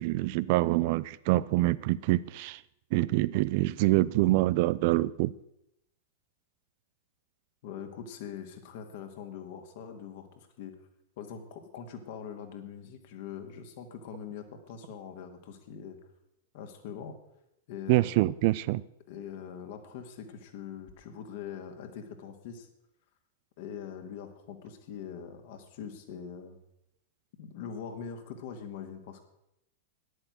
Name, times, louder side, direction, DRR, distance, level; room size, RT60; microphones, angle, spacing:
voice 1, 0.0-2.6 2.9-5.3 17.9-18.8, right 18 dB, 45° right, 19 dB, 0.4 m, -25 dB
voice 2, 7.6-10.7 11.2-16.0 16.5-17.2 17.7-18.2 19.1-22.7 23.6-26.6 27.4-29.2, left 7 dB, 50° left, 6 dB, 2.3 m, -43 dB
14.0 x 11.0 x 6.5 m, 0.82 s
figure-of-eight pair, 95°, 0 cm